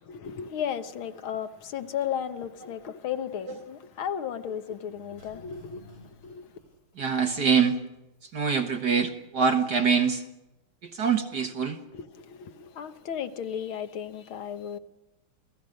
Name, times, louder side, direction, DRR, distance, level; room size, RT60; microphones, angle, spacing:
voice 1, 0.0-6.5 11.9-14.8, left 8 dB, 75° left, 2.0 m, -35 dB
sound 1, 4.9-7.7 8.0-8.1, left 3 dB, 45° left, 8.3 m, -52 dB
voice 2, 7.0-7.8 8.3-10.2 10.8-11.8, right 6 dB, 55° right, 1.9 m, -24 dB
29.0 x 17.5 x 6.5 m
omnidirectional pair, 2.3 m